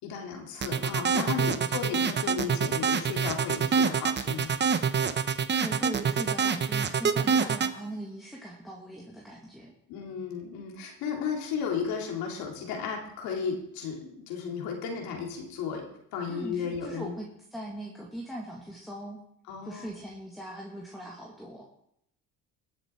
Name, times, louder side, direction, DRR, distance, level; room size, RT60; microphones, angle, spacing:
voice 1, 0.0-4.5 9.9-15.8 16.1-17.1 19.5-19.9, left 6 dB, 85° left, 1 dB, 3.3 m, -34 dB
sound 1, 0.6-7.7, right 6 dB, 30° right, 0.9 m, -26 dB
voice 2, 5.5-9.7 16.3-19.2 19.6-21.7, right 1 dB, ahead, -2 dB, 2.1 m, -40 dB
21.0 x 7.8 x 4.6 m, 0.76 s
cardioid pair, 100°, 35 cm